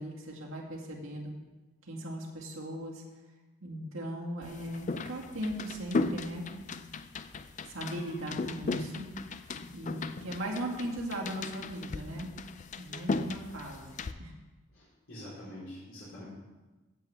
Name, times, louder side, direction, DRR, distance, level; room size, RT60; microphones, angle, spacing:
voice 1, 0.0-1.3 1.9-3.0 3.6-6.5 7.7-9.1 9.7-12.3 12.7-14.3, right 1 dB, 85° right, -2 dB, 2.2 m, -38 dB
sound 1, 4.4-14.1, left 3 dB, 35° left, 0.4 m, -37 dB
voice 2, 14.7-16.2, left 1 dB, 80° left, -9 dB, 3.9 m, -45 dB
15.0 x 8.0 x 3.5 m, 1.2 s
head